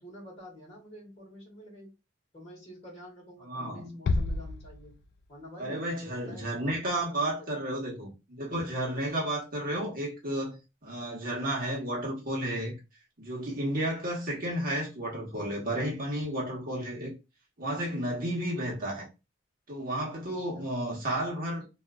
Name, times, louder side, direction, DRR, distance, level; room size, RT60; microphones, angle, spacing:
voice 1, 0.0-1.9 2.3-4.9 5.3-7.7 20.1-20.7, equal, 35° left, 1.7 m, -48 dB
voice 2, 3.4-4.0 5.6-12.8 13.2-17.1 17.6-19.1 19.7-21.6, right 1 dB, 50° right, 1.2 m, -32 dB
Bass drum, 4.1-5.5, left 3 dB, 60° left, 0.3 m, -31 dB
3.5 x 2.7 x 2.3 m
head